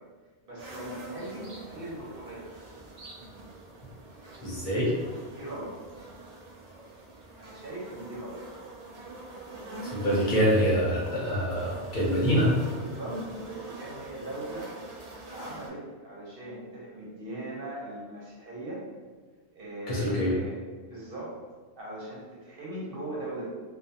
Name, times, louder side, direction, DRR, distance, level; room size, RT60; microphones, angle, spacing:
voice 1, 0.5-2.5 5.3-5.8 7.4-8.4 12.7-14.7 15.2-18.8 19.5-21.4 21.8-23.5, right 1 dB, 55° right, -6 dB, 1.0 m, -39 dB
sound 1, 0.6-15.7, right 2 dB, 80° right, 0.3 m, -44 dB
voice 2, 4.4-4.9 9.9-12.5 19.9-20.3, equal, 50° left, -6 dB, 0.8 m, -25 dB
2.4 x 2.3 x 2.7 m, 1.4 s
omnidirectional pair, 1.2 m